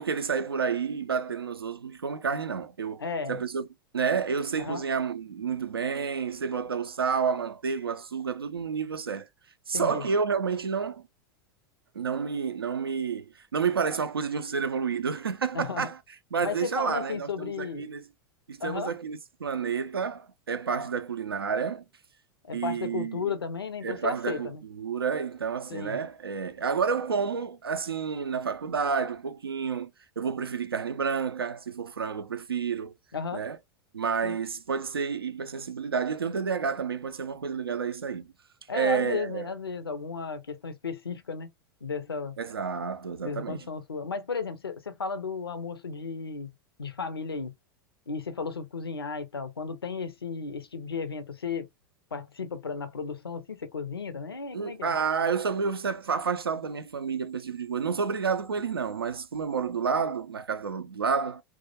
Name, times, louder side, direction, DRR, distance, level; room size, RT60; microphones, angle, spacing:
voice 1, 0.0-3.0 3.3-3.6 3.9-9.3 9.7-11.0 11.9-16.0 16.3-18.0 18.5-21.8 22.5-23.2 23.8-29.9 30.2-32.9 33.3-33.6 33.9-38.3 38.7-39.5 42.4-43.7 54.5-61.4, right 6 dB, 80° right, 0.4 m, -30 dB
voice 2, 3.0-3.4 4.6-4.9 9.7-10.0 15.5-15.9 16.4-17.9 18.6-18.9 22.4-24.6 25.7-26.0 33.1-33.4 34.2-34.4 38.7-41.5 41.8-42.3 43.2-46.5 46.8-47.5 48.1-51.7 52.1-54.9, left 5 dB, 80° left, 0.5 m, -34 dB
2.2 x 2.1 x 2.7 m
figure-of-eight pair, 90°, 12 cm